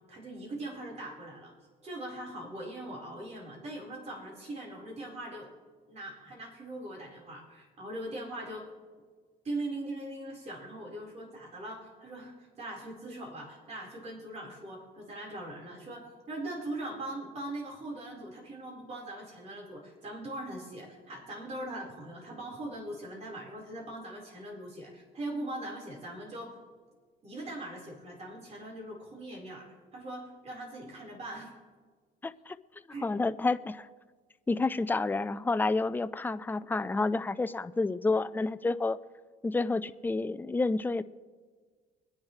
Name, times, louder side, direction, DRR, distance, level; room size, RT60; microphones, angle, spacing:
voice 1, 0.1-1.5 1.8-5.5 5.9-8.7 9.4-26.6 27.2-31.5 32.9-33.1, right 1 dB, 40° right, -2 dB, 4.5 m, -41 dB
voice 2, 32.2-32.6 33.0-33.9 34.5-39.0 39.4-41.0, left 3 dB, 10° left, 12 dB, 0.4 m, -29 dB
24.5 x 10.5 x 3.3 m, 1.5 s
cardioid pair, 110°, 17 cm